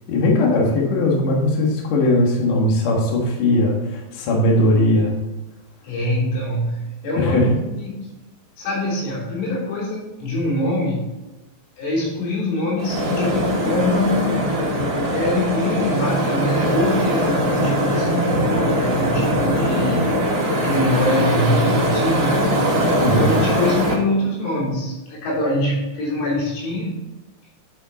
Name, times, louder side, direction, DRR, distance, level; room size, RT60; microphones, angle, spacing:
voice 1, 0.1-5.2 7.2-7.5 23.0-23.3, left 1 dB, 55° left, -1 dB, 2.5 m, -19 dB
voice 2, 5.8-8.1 8.6-11.1 11.8-14.5 15.1-22.5 23.0-27.0, left 1 dB, 85° left, -6 dB, 5.9 m, -24 dB
sound 1, 12.8-23.9, equal, 35° right, 2.2 m, -21 dB
11.0 x 5.6 x 4.2 m, 1.1 s
omnidirectional pair, 5.6 m